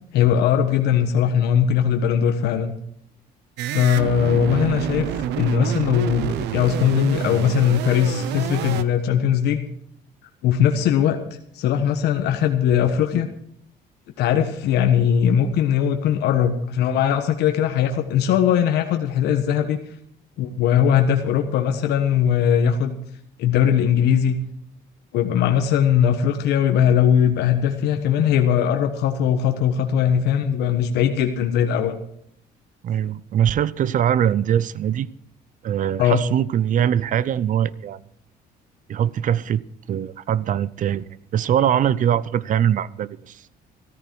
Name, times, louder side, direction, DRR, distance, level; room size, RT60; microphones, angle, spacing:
voice 1, 0.1-2.7 3.7-9.6 10.4-11.2 11.5-13.3 14.2-19.8 20.4-22.9 23.4-24.4 25.1-31.9 36.0-36.2, left 9 dB, 80° left, 1.3 m, -20 dB
sound 1, 3.6-8.8, right 11 dB, 85° right, 0.9 m, -28 dB
voice 2, 32.8-35.1 35.6-38.1 38.9-39.6 39.9-43.5, right 9 dB, 50° right, 0.6 m, -22 dB
14.0 x 14.0 x 4.7 m
cardioid pair, 110°, 17 cm